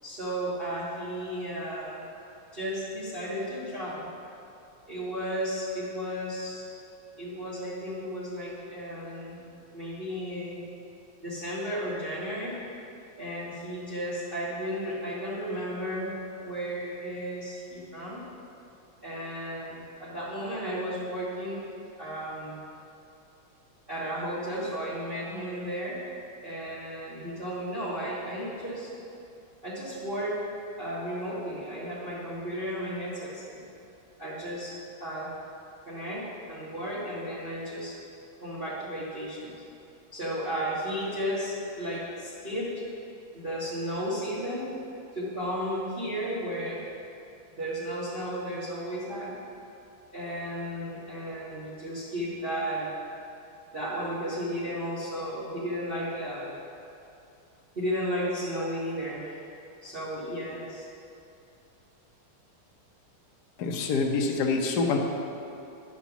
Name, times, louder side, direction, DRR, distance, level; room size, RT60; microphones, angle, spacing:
voice 1, 0.0-2.0 2.5-4.1 4.9-6.6 7.2-9.5 9.7-10.6 11.2-12.5 13.2-16.1 16.4-18.2 19.0-21.7 22.0-22.6 23.9-26.0 26.4-28.9 29.6-30.4 30.8-33.6 34.2-34.7 35.0-35.3 35.8-37.9 38.4-39.5 40.1-42.8 43.3-44.7 45.1-46.8 47.5-49.4 50.1-52.9 53.7-56.5 57.7-59.4 59.8-60.9, equal, 30° right, -10 dB, 1.5 m, -34 dB
voice 2, 63.6-65.0, left 4 dB, 60° left, 2 dB, 1.2 m, -26 dB
10.0 x 5.1 x 7.0 m, 2.7 s
omnidirectional pair, 2.4 m